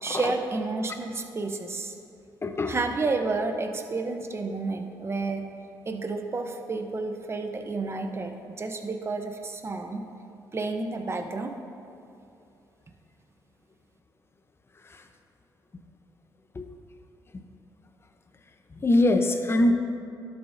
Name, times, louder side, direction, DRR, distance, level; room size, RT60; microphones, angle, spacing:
voice 1, 0.0-1.9 2.7-5.5 5.9-10.0 10.5-11.5, right 3 dB, 30° right, 5 dB, 0.8 m, -30 dB
voice 2, 2.4-2.7 16.6-16.7 18.8-19.7, left 1 dB, 30° left, 6 dB, 0.8 m, -22 dB
12.0 x 7.1 x 2.7 m, 2.6 s
supercardioid pair, 70°, 8 cm